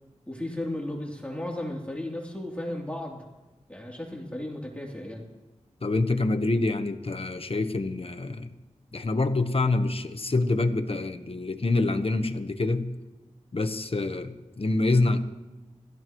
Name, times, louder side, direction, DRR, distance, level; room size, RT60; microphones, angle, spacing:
voice 1, 0.3-3.2 3.7-5.3, left 1 dB, 10° left, -2 dB, 3.2 m, -35 dB
voice 2, 5.8-8.5 8.9-12.9 13.5-15.2, left 2 dB, 50° left, 9 dB, 1.2 m, -26 dB
27.5 x 14.5 x 3.1 m, 1.1 s
cardioid pair, 45°, 12 cm